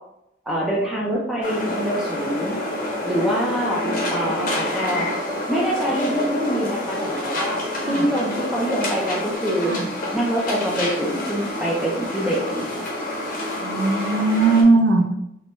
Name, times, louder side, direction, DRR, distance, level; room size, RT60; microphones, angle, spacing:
voice 1, 0.5-2.6 3.1-3.8 4.1-5.1 5.5-7.6 7.9-9.7 10.1-12.7, equal, ahead, -4 dB, 0.3 m, -25 dB
sound 1, 1.4-14.6, left 1 dB, 45° left, 0.7 m, -28 dB
sound 2, 3.3-9.4, left 2 dB, 80° left, 0.4 m, -41 dB
voice 2, 4.2-4.6 4.9-5.1 7.8-8.1 9.7-9.9 13.6-15.1, right 3 dB, 70° right, 3 dB, 0.5 m, -20 dB
3.1 x 2.2 x 3.0 m, 0.83 s
head